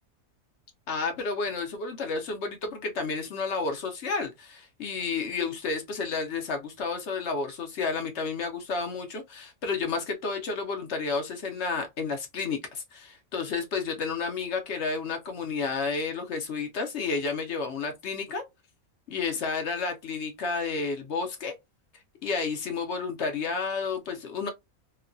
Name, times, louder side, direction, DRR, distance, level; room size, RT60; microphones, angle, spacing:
voice 1, 0.9-18.4 19.1-21.5 22.2-24.5, left 4 dB, 60° left, 0.8 m, -31 dB
3.0 x 2.1 x 2.4 m
omnidirectional pair, 1.5 m